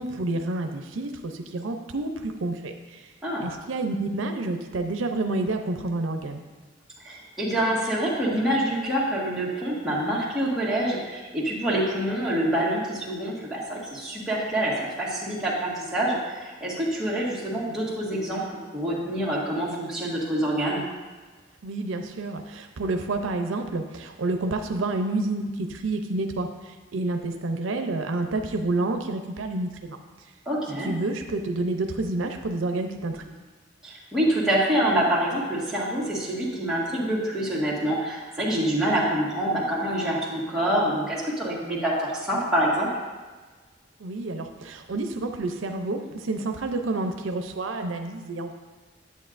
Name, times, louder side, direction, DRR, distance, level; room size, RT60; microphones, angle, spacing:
voice 1, 0.0-3.1 3.4-6.4 21.6-30.0 30.8-33.4 44.0-48.5, right 2 dB, 85° right, 5 dB, 0.6 m, -29 dB
voice 2, 7.0-20.8 30.4-30.9 33.8-42.9, right 1 dB, 5° right, -7 dB, 1.6 m, -26 dB
9.3 x 8.2 x 2.5 m, 1.4 s
head